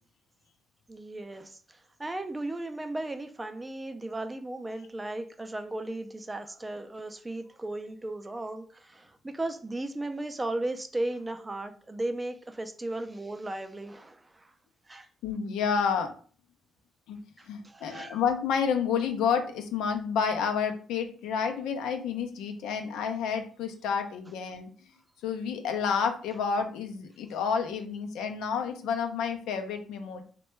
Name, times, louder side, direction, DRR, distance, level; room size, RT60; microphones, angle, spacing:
voice 1, 0.9-14.5 14.9-15.1 17.4-18.2, right 2 dB, 15° right, 7 dB, 0.4 m, -36 dB
voice 2, 15.2-16.1 17.1-17.2 17.5-24.7 25.2-30.2, left 6 dB, 90° left, 6 dB, 0.5 m, -30 dB
3.2 x 2.2 x 3.0 m, 0.43 s
cardioid pair, 90°, 0 cm